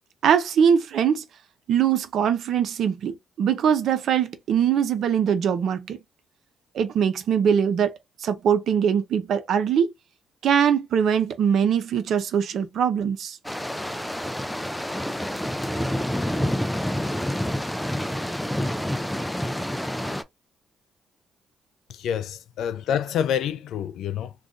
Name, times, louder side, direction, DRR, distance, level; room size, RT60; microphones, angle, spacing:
voice 1, 0.2-1.2 1.7-6.0 6.7-9.9 10.4-13.4, right 8 dB, 70° right, 0.7 m, -22 dB
sound 1, 13.4-20.2, equal, 5° left, 0.5 m, -28 dB
voice 2, 21.9-24.3, left 9 dB, 75° left, 0.4 m, -27 dB
2.5 x 2.4 x 3.7 m
cardioid pair, 70°, 0 cm